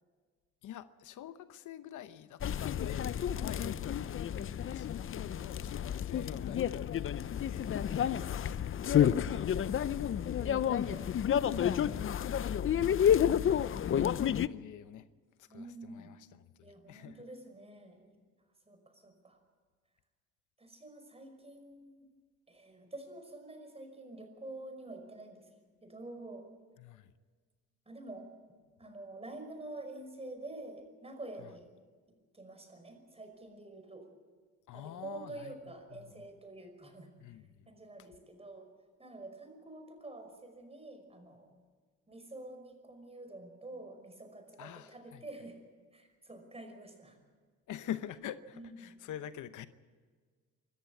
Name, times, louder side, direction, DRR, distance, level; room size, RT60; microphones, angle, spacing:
voice 1, 0.6-8.7 12.5-12.7 13.9-15.1 15.4-17.2 26.8-27.1 31.4-31.5 34.7-36.3 37.2-37.7 44.6-45.2 47.7-49.7, left 11 dB, 80° left, 12 dB, 1.0 m, -47 dB
sound 1, 2.4-14.5, left 9 dB, 45° left, 0.6 m, -30 dB
sound 2, 2.8-9.4, right 4 dB, 55° right, 3.9 m, -59 dB
voice 2, 3.3-4.0 4.6-4.8 5.2-5.9 7.8-8.6 9.0-12.1 15.5-16.1 16.6-18.1 18.7-19.4 20.6-22.1 22.5-25.5 25.8-26.5 27.9-28.3 28.8-31.7 32.3-34.1 34.7-37.4 37.7-38.7 39.0-41.5 42.1-45.6 45.9-47.2 48.5-48.9, right 2 dB, 20° right, 6 dB, 5.5 m, -48 dB
25.0 x 14.0 x 8.5 m, 1.5 s
cardioid pair, 90°, 30 cm